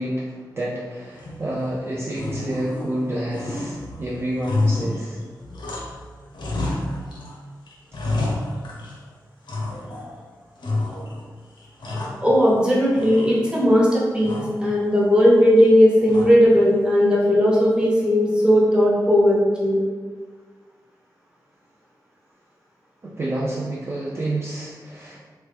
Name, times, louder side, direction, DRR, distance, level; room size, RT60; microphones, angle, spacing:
voice 1, 0.0-5.2 23.0-25.2, right 1 dB, 35° right, -6 dB, 0.4 m, -29 dB
sound 1, 1.2-1.7 2.1-3.0 3.3-6.0 6.3-7.3 7.7-9.0 9.5-10.1 10.6-11.2 11.6-12.6 13.0-13.7 14.2-14.7 16.1-16.6, left 2 dB, 90° left, 0.6 m, -29 dB
voice 2, 11.8-19.8, equal, 10° right, -5 dB, 0.8 m, -17 dB
3.0 x 2.1 x 3.2 m, 1.5 s
wide cardioid pair, 80°, 8 cm